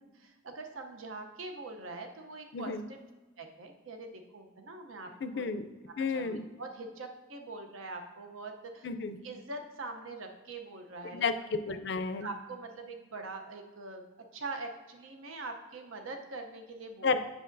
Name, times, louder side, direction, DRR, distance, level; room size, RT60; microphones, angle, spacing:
voice 1, 0.1-3.0 3.4-5.5 6.1-8.9 9.2-11.3 12.2-14.0 14.3-17.1, right 3 dB, 90° right, 4 dB, 0.7 m, -43 dB
voice 2, 5.2-5.6 6.0-6.5 8.8-9.2 11.1-12.3 17.0-17.2, left 4 dB, 55° left, 11 dB, 0.4 m, -32 dB
7.6 x 6.1 x 2.6 m, 1.2 s
head